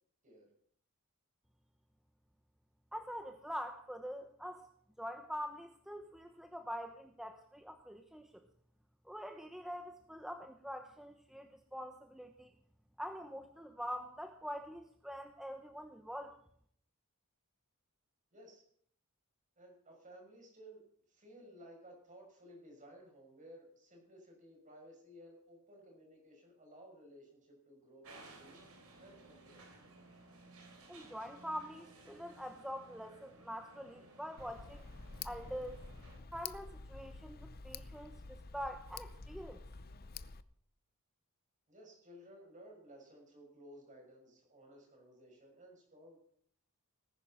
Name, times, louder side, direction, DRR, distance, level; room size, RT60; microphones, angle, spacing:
voice 1, 2.9-4.7 5.0-8.5 9.0-12.5 13.0-16.4 30.9-34.9 35.2-35.8 36.3-38.2 38.5-39.6, equal, ahead, 5 dB, 0.9 m, -44 dB
voice 2, 18.3-18.6 19.6-28.6 29.0-29.9 41.7-46.2, equal, 35° right, 0 dB, 6.3 m, -57 dB
sound 1, 28.0-36.2, right 2 dB, 70° right, 4.2 m, -58 dB
Tick, 34.4-40.4, left 5 dB, 45° left, 0.7 m, -49 dB
19.0 x 10.5 x 5.8 m, 0.64 s
head